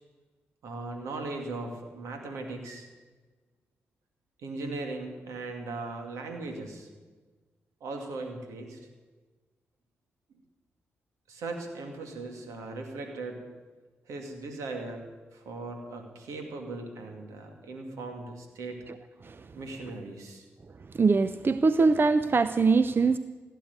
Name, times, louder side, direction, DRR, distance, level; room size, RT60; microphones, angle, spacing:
voice 1, 0.6-2.9 4.4-6.9 7.8-8.8 11.3-13.4 14.1-15.0 15.3-18.8 19.6-20.4, right 3 dB, 80° right, 3 dB, 2.3 m, -38 dB
voice 2, 21.0-23.2, right 4 dB, 45° right, 12 dB, 0.6 m, -22 dB
17.0 x 8.3 x 9.5 m, 1.3 s
supercardioid pair, 40°, 5 cm